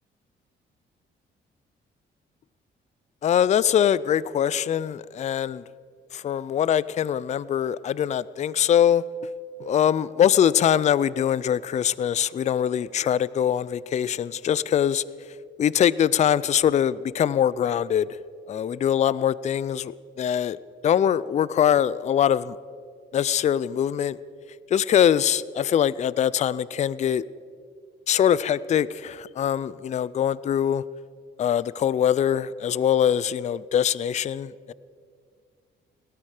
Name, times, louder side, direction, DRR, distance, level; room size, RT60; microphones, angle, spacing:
voice 1, 3.2-5.6 6.1-9.0 9.6-15.0 15.6-18.2 18.5-20.6 20.8-22.6 23.1-24.2 24.7-27.2 28.1-30.8 31.4-34.7, left 9 dB, 35° left, 20 dB, 0.4 m, -23 dB
17.5 x 13.0 x 4.9 m, 2.1 s
cardioid pair, 90°, 20 cm